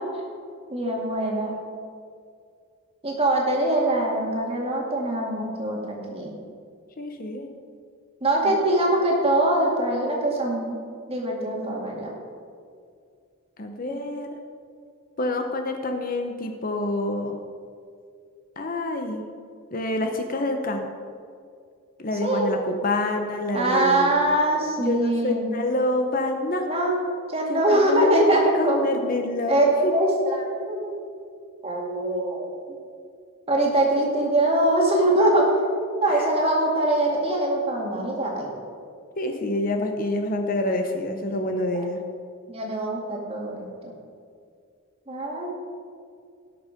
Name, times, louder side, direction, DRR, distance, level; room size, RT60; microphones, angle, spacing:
voice 1, 0.7-1.6 3.0-6.4 8.2-10.8 11.1-12.1 13.9-14.0 22.2-22.5 23.5-25.5 26.7-27.0 27.3-28.8 29.5-31.0 31.6-32.5 33.5-35.6 36.0-38.5 41.3-41.4 42.5-43.9 45.1-45.5, right 1 dB, 25° right, -1 dB, 2.1 m, -23 dB
voice 2, 7.0-7.5 8.4-8.5 13.6-14.4 15.2-17.4 18.6-19.3 19.7-20.9 22.0-24.1 24.8-26.7 27.5-29.9 36.1-36.3 39.2-42.0, left 2 dB, 40° left, 4 dB, 0.8 m, -27 dB
17.5 x 6.5 x 5.1 m, 2.2 s
head